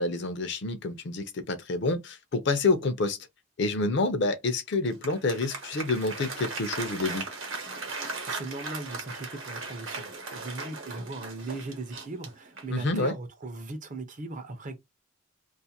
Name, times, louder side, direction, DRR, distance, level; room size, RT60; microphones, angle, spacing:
voice 1, 0.0-3.2 3.6-7.3 12.7-13.1, left 3 dB, 55° left, 0.5 m, -28 dB
Applause, 4.7-12.9, right 3 dB, 65° right, 0.9 m, -38 dB
voice 2, 8.3-14.8, right 2 dB, 35° right, 0.5 m, -38 dB
2.5 x 2.4 x 2.8 m
head